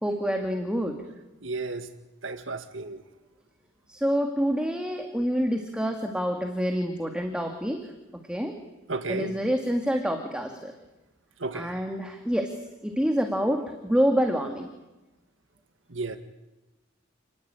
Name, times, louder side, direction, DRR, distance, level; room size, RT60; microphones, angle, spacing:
voice 1, 0.0-0.9 3.9-7.8 8.3-8.5 9.1-10.7 11.5-12.5 12.8-14.7, equal, 5° right, 3 dB, 2.2 m, -27 dB
voice 2, 1.4-1.8 2.2-3.0 8.9-9.3 11.4-11.7 15.9-16.2, right 3 dB, 75° right, 9 dB, 1.9 m, -32 dB
29.5 x 20.0 x 9.0 m, 1.0 s
head